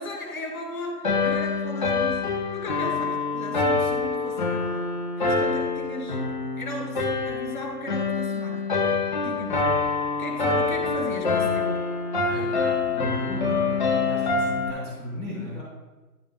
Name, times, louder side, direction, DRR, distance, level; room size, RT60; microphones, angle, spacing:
voice 1, 0.0-4.8 5.2-6.2 6.6-9.0 9.2-11.8, left 1 dB, 5° left, -10 dB, 1.4 m, -36 dB
sound 1, 1.0-14.7, left 4 dB, 30° left, 0.8 m, -26 dB
voice 2, 12.2-15.6, left 1 dB, 15° right, -7 dB, 2.5 m, -36 dB
11.0 x 6.7 x 2.2 m, 1.2 s
figure-of-eight pair, 150°, 48 cm